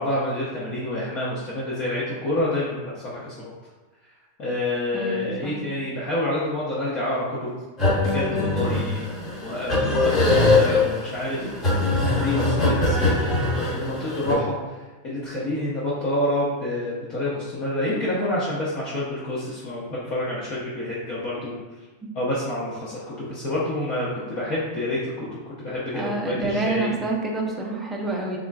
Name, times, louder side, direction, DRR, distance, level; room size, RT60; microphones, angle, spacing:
voice 1, 0.0-3.5 4.4-7.5 8.0-9.0 9.4-13.1 13.5-21.6 22.1-26.9, left 1 dB, 40° left, -8 dB, 0.8 m, -28 dB
voice 2, 4.9-5.6 22.0-22.1 25.9-28.4, right 2 dB, 5° right, -2 dB, 0.5 m, -28 dB
sound 1, 7.8-14.3, left 2 dB, 25° left, 1.1 m, -22 dB
3.7 x 3.6 x 2.2 m, 1.2 s
supercardioid pair, 165°, 0 cm